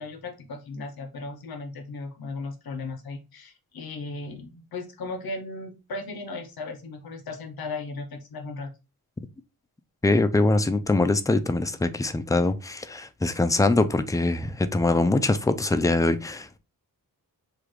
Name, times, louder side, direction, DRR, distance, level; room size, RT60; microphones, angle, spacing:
voice 1, 0.0-8.7, left 3 dB, 75° left, 0.9 m, -36 dB
voice 2, 10.0-16.6, left 2 dB, 10° left, 0.3 m, -23 dB
6.8 x 2.3 x 3.1 m
wide cardioid pair, 135°, 37 cm